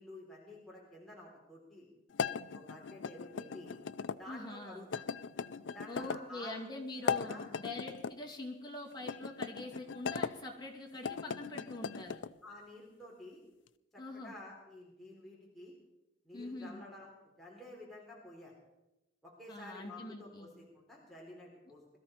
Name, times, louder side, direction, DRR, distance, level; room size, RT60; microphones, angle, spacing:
voice 1, 0.0-1.9 2.5-3.8 4.2-5.0 5.7-6.7 7.0-7.5 12.4-13.4 13.9-15.7 16.2-18.5 19.2-22.0, left 1 dB, ahead, -5 dB, 3.5 m, -51 dB
sound 1, 2.1-4.2 4.9-6.2 6.9-8.1 9.0-10.3 10.9-12.3, left 6 dB, 80° left, 0.5 m, -38 dB
voice 2, 4.2-4.9 5.9-12.2 14.0-14.3 16.3-16.8 19.5-20.5, left 2 dB, 25° left, -1 dB, 2.6 m, -44 dB
21.5 x 13.5 x 4.4 m, 0.94 s
head